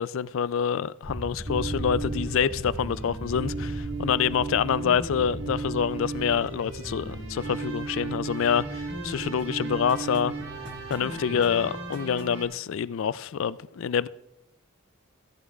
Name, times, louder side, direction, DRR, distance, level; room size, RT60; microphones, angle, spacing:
voice 1, 0.0-10.3 10.9-14.1, left 7 dB, 65° left, 0.3 m, -27 dB
sound 1, 1.0-12.0, equal, 25° right, 2.0 m, -39 dB
sound 2, 1.5-12.4, right 3 dB, 55° right, 1.6 m, -35 dB
15.0 x 11.0 x 2.4 m
head